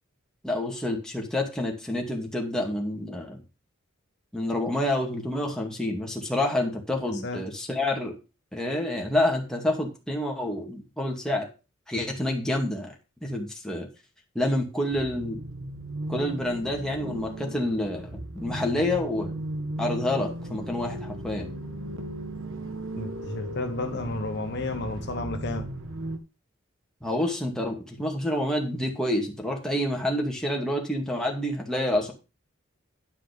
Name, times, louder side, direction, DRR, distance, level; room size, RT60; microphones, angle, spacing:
voice 1, 0.4-3.4 4.3-8.2 8.5-11.5 11.9-12.9 13.2-13.9 14.3-15.4 16.1-19.4 19.8-21.5 27.0-32.1, left 1 dB, 5° left, 0 dB, 2.2 m, -28 dB
sound 1, 14.9-26.2, right 1 dB, 75° right, 1.4 m, -36 dB
voice 2, 23.0-25.7, left 2 dB, 60° left, 5 dB, 1.4 m, -32 dB
10.5 x 5.7 x 5.3 m, 0.29 s
head